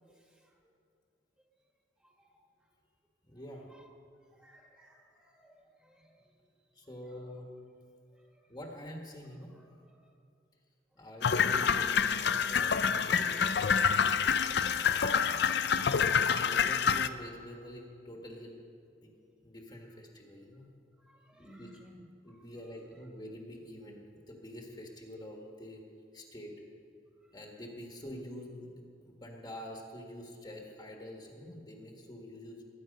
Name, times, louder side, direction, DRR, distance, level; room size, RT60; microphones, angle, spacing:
voice 1, 0.1-0.5 2.0-2.4 3.7-3.8 4.3-6.3 7.1-7.4 8.1-8.4 9.6-10.1 11.0-11.1 14.5-16.0 21.0-22.0 22.3-22.4 27.2-27.4, equal, 5° right, 0 dB, 1.8 m, -60 dB
voice 2, 3.2-3.7 6.7-7.5 8.5-9.5 10.9-13.6 15.9-18.6 19.0-19.1 19.4-20.7 21.4-21.7 22.2-25.8 26.1-26.5 27.3-32.6, equal, 25° left, 0 dB, 1.6 m, -46 dB
sound 1, 11.2-17.1, left 6 dB, 65° left, 0.5 m, -27 dB
21.5 x 9.4 x 5.3 m, 2.4 s
head